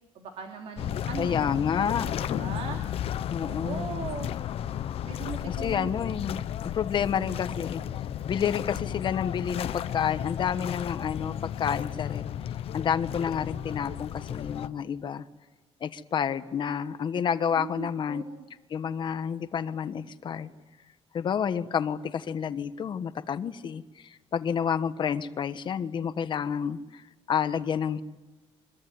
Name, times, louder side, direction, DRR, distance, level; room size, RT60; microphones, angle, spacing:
voice 1, 0.1-1.6 2.3-2.8 3.5-4.3 5.1-5.9 17.6-18.5, right 7 dB, 80° right, 2 dB, 3.1 m, -39 dB
sound 1, 0.8-14.7, left 10 dB, 65° left, 1.0 m, -33 dB
voice 2, 1.2-2.1 3.3-3.9 5.5-7.8 8.3-12.2 12.7-15.2 15.8-18.2 18.7-20.5 21.1-27.0 27.3-28.0, left 7 dB, 45° left, 11 dB, 1.3 m, -29 dB
24.5 x 23.0 x 9.5 m, 1.1 s
cardioid pair, 145°, 11 cm